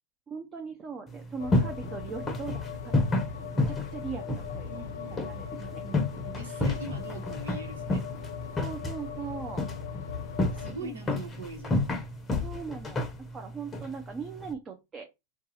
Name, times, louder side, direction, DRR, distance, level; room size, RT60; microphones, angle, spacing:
voice 1, 0.3-4.8 5.1-5.5 5.7-5.8 8.6-9.6 10.8-11.1 12.4-13.1 13.3-15.1, right 5 dB, 25° right, 0.6 m, -40 dB
sound 1, 1.1-14.5, left 2 dB, 15° left, 0.7 m, -32 dB
sound 2, 1.4-10.7, left 8 dB, 65° left, 0.5 m, -40 dB
voice 2, 4.7-8.0 10.5-12.0, right 2 dB, 85° right, 1.1 m, -42 dB
2.6 x 2.4 x 4.0 m
hypercardioid pair, 120°, 0 cm